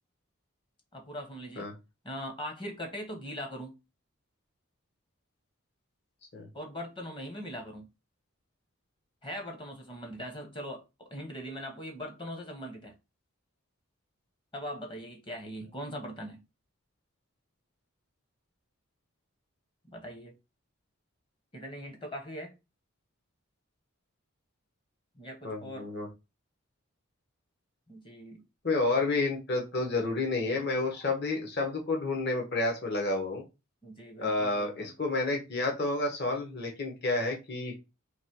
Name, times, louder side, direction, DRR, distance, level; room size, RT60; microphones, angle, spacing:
voice 1, 0.9-1.7 2.0-3.7 6.5-7.9 9.2-12.9 14.5-16.4 19.8-20.3 21.5-22.5 25.2-25.9 27.9-28.4 31.0-31.1 33.8-34.9, equal, 20° left, 0.9 m, -41 dB
voice 2, 25.4-26.1 28.6-33.4 34.2-37.8, left 2 dB, 50° left, 1.1 m, -30 dB
3.2 x 2.9 x 4.5 m
head